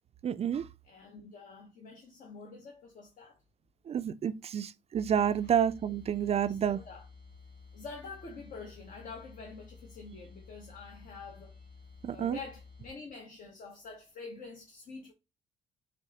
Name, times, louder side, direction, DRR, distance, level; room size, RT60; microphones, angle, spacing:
voice 1, 0.2-0.7 3.9-6.8 12.0-12.4, right 8 dB, 40° right, 0.4 m, -29 dB
voice 2, 0.8-3.4 5.4-5.6 6.5-7.1 7.7-11.7 12.1-15.1, left 4 dB, 50° left, 0.8 m, -47 dB
sound 1, 4.9-12.9, left 4 dB, 30° left, 1.5 m, -53 dB
5.7 x 2.1 x 2.8 m
hypercardioid pair, 60°, 17 cm